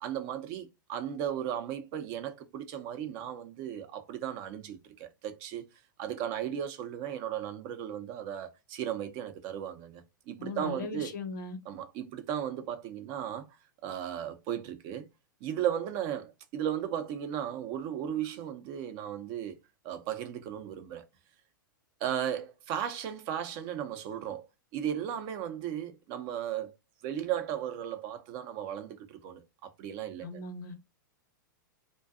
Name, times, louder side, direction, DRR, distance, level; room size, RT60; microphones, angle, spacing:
voice 1, 0.0-5.6 6.0-11.1 11.7-13.5 13.8-15.1 15.4-19.5 19.8-21.0 22.0-24.5 24.7-26.7 27.0-30.4, right 10 dB, 45° right, 0.5 m, -36 dB
voice 2, 10.4-11.6 30.2-30.8, left 3 dB, 65° left, 0.7 m, -38 dB
2.5 x 2.2 x 2.3 m
hypercardioid pair, 105°, 11 cm